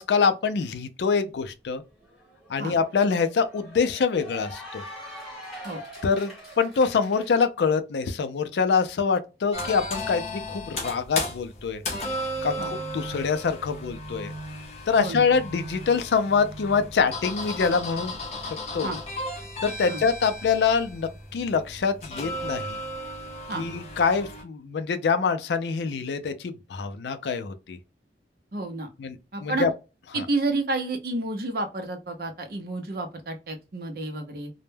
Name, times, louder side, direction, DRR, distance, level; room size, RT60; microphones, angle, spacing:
voice 1, 0.0-1.8 2.5-4.8 6.0-11.8 12.4-14.3 14.9-18.1 18.4-19.0 19.6-22.8 23.5-27.8 29.0-29.2 29.4-29.7 30.1-30.2, left 5 dB, 75° left, 0.4 m, -25 dB
Cheering / Applause, 1.8-7.3, equal, ahead, 1.0 m, -43 dB
sound 1, 9.5-24.4, left 1 dB, 40° left, 0.6 m, -35 dB
voice 2, 28.5-28.9 29.3-29.7 30.1-34.5, right 2 dB, 55° right, 0.5 m, -30 dB
2.1 x 2.1 x 3.1 m
head